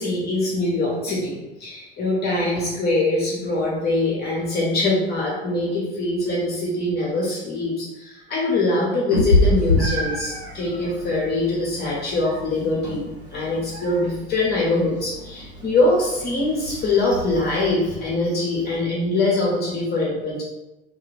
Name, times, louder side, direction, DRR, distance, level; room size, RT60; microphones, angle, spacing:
voice 1, 0.0-20.4, left 2 dB, 30° left, -5 dB, 1.0 m, -23 dB
Meow, 9.1-18.8, left 1 dB, 75° right, 1.4 m, -27 dB
3.0 x 2.8 x 3.3 m, 0.99 s
figure-of-eight pair, 70°, 32 cm